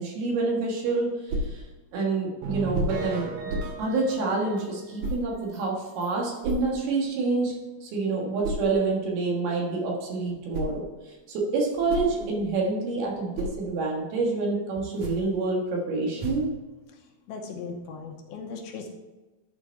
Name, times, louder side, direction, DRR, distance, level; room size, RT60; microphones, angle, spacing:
voice 1, 0.0-1.6 1.9-3.5 3.8-7.6 7.8-10.8 11.3-16.5, right 3 dB, 75° right, -1 dB, 3.5 m, -27 dB
sound 1, 1.3-1.6 2.7-3.0 3.5-3.8 5.0-5.2 6.4-6.7 8.4-8.7 10.2-10.8 11.6-12.6 13.0-13.6 14.8-15.3 16.2-16.5, right 1 dB, 55° right, 2.3 m, -32 dB
sound 2, 2.4-5.1 5.5-5.6 6.0-6.1 6.5-6.6, right 4 dB, 90° right, 3.6 m, -36 dB
voice 2, 17.3-18.9, left 4 dB, 75° left, 2 dB, 2.6 m, -38 dB
11.0 x 4.9 x 4.6 m, 1.1 s
omnidirectional pair, 4.7 m